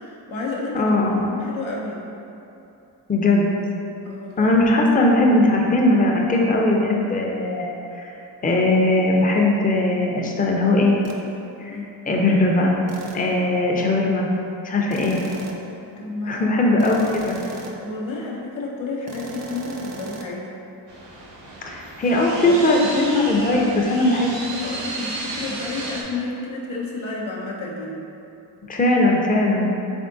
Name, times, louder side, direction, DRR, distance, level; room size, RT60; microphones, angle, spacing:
voice 1, 0.0-0.9 1.2-2.1 4.0-4.5 11.7-11.9 16.0-16.5 17.8-20.5 22.4-23.1 23.5-23.7 24.0-24.1 24.5-28.0, left 3 dB, 85° left, -4 dB, 0.7 m, -31 dB
voice 2, 0.7-1.2 3.1-3.5 4.4-7.7 7.9-8.1 8.4-11.0 11.6-11.8 12.1-12.8 13.1-14.3 14.6-15.2 16.3-17.4 21.6-24.3 28.7-29.7, left 2 dB, 20° left, -1 dB, 0.5 m, -19 dB
sound 1, 11.0-11.3 12.9-13.4 14.9-15.7 16.8-17.9 19.1-20.3, right 4 dB, 40° right, 0.4 m, -37 dB
sound 2, 20.9-26.0, right 2 dB, 65° right, 0.8 m, -33 dB
3.5 x 3.5 x 2.6 m, 2.8 s
cardioid pair, 40°, 45 cm